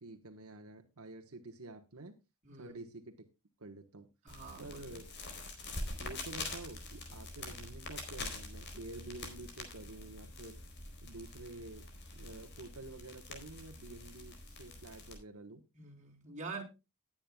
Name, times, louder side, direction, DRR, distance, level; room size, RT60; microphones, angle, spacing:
voice 1, 0.0-2.2 2.5-3.1 3.6-4.1 4.6-5.1 6.0-10.6 11.0-11.9 12.1-15.6, right 2 dB, 70° right, 1.3 m, -49 dB
voice 2, 2.4-2.7 4.2-5.0 15.8-16.6, right 4 dB, 35° right, 3.6 m, -46 dB
sound 1, 4.3-15.2, left 2 dB, 50° left, 4.2 m, -45 dB
19.5 x 8.8 x 2.3 m
head